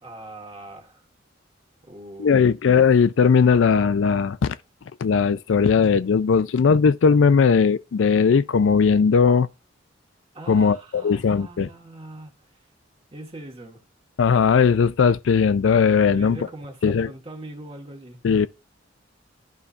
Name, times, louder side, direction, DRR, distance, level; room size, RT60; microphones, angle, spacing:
voice 1, 0.0-1.0 1.8-2.5 10.3-12.4 13.1-13.8 16.1-18.2, right 1 dB, 30° right, 1.5 m, -41 dB
voice 2, 2.2-4.6 5.0-9.5 10.5-11.7 14.2-16.4 16.8-17.1 18.2-18.5, left 6 dB, 75° left, 0.4 m, -18 dB
12.0 x 4.1 x 2.5 m
head